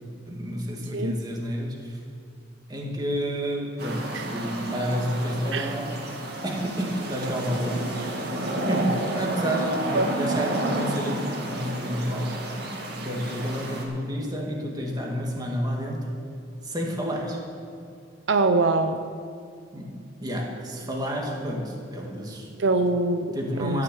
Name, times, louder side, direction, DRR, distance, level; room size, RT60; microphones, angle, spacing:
voice 1, 0.3-2.0 2.7-5.9 6.4-7.9 8.7-12.5 13.0-16.1 16.6-17.4 19.7-22.5 23.3-23.8, equal, 20° right, -1 dB, 2.0 m, -30 dB
sound 1, 3.8-13.8, right 1 dB, 55° right, 2.1 m, -31 dB
voice 2, 18.3-19.0 22.6-23.2 23.6-23.8, right 3 dB, 75° right, 8 dB, 0.6 m, -23 dB
14.5 x 6.7 x 8.2 m, 2.4 s
head